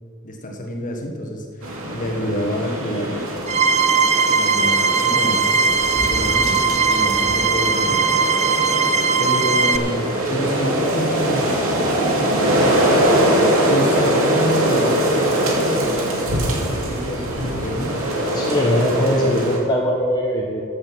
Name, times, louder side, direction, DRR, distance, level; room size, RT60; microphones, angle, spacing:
voice 1, 0.2-3.2 4.3-8.1 9.2-11.7 12.5-18.4, equal, 40° left, 1 dB, 1.5 m, -28 dB
sound 1, 1.6-19.6, right 1 dB, 75° right, 2.7 m, -22 dB
sound 2, 3.5-9.8, right 5 dB, 30° right, 0.5 m, -19 dB
voice 2, 18.3-20.6, equal, 20° left, -2 dB, 1.1 m, -21 dB
14.0 x 8.0 x 6.1 m, 2.6 s
head